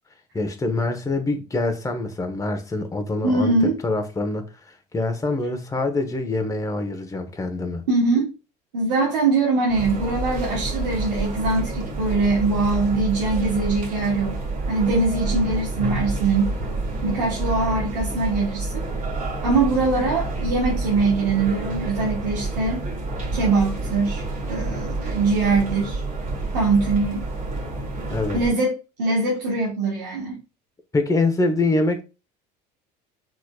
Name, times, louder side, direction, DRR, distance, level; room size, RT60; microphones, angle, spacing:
voice 1, 0.3-3.5 3.8-7.8 28.1-28.4 30.9-32.0, left 2 dB, 15° left, 1.1 m, -25 dB
voice 2, 3.2-3.8 7.9-8.3 8.7-14.4 14.7-16.5 17.0-18.7 19.4-22.8 23.3-26.0 26.5-27.2 28.3-30.4, right 3 dB, 80° right, 1.3 m, -22 dB
sound 1, 9.7-28.5, right 2 dB, 40° right, 2.1 m, -28 dB
4.6 x 4.4 x 2.3 m
hypercardioid pair, 65°, 21 cm